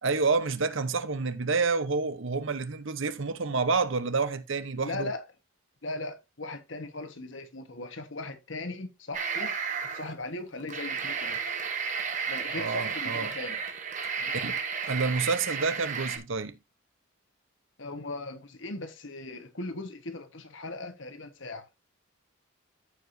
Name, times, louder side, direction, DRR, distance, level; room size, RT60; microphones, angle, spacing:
voice 1, 0.0-5.1 12.5-13.3 14.3-14.6 14.9-16.6, right 4 dB, 65° right, 0.8 m, -28 dB
voice 2, 4.7-5.3 5.8-9.5 9.9-11.5 12.3-13.6 14.2-14.5 17.8-21.7, left 2 dB, 60° left, 1.3 m, -38 dB
sound 1, 9.1-10.1 10.6-16.2, right 6 dB, 35° right, 1.2 m, -33 dB
14.0 x 4.9 x 2.6 m
head